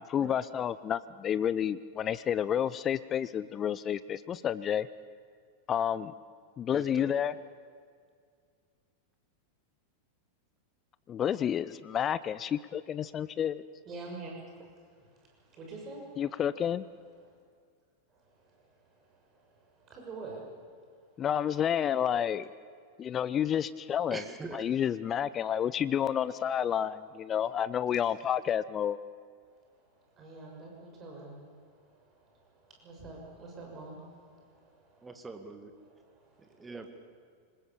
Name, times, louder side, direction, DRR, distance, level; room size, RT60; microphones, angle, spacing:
voice 1, 0.0-4.9 5.7-6.1 6.6-7.3 11.1-13.6 16.2-16.8 21.2-22.5 23.0-24.2 24.5-29.0, left 9 dB, 25° left, 17 dB, 0.5 m, -30 dB
voice 2, 6.7-7.1 24.1-24.6 35.0-35.7 36.4-36.9, right 3 dB, 10° right, 6 dB, 2.0 m, -43 dB
voice 3, 13.8-14.6 15.0-16.2 17.2-17.3 18.1-20.6 29.9-35.3 35.8-36.7, right 3 dB, 30° right, -1 dB, 6.7 m, -47 dB
26.0 x 19.5 x 7.2 m, 2.1 s
figure-of-eight pair, 90°, 0 cm